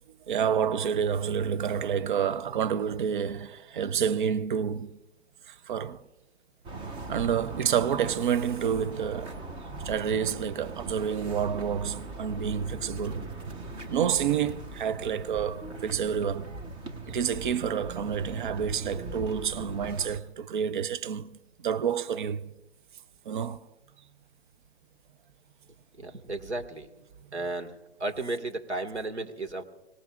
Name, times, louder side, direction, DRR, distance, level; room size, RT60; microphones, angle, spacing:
voice 1, 0.3-5.0 5.5-6.0 7.1-9.4 9.8-13.3 13.9-16.5 17.1-22.5 23.2-23.7, right 8 dB, 45° right, 0.7 m, -29 dB
sound 1, 6.6-20.2, right 2 dB, 15° right, 1.0 m, -40 dB
voice 2, 25.9-26.9 27.3-29.6, right 2 dB, 85° right, 2.0 m, -34 dB
26.0 x 19.0 x 2.5 m
figure-of-eight pair, 130°, 33 cm